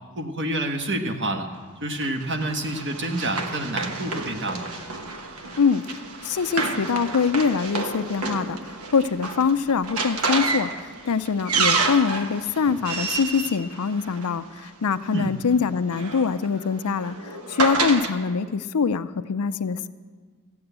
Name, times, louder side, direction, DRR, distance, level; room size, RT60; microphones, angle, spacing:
voice 1, 0.2-1.5 1.8-4.7 15.1-15.3, right 1 dB, 55° right, 5 dB, 1.3 m, -28 dB
Run, 2.0-14.6 15.6-18.1, right 4 dB, 80° right, 1.2 m, -29 dB
voice 2, 5.6-19.9, left 5 dB, 85° left, 13 dB, 0.5 m, -24 dB
14.5 x 8.7 x 8.1 m, 1.5 s
head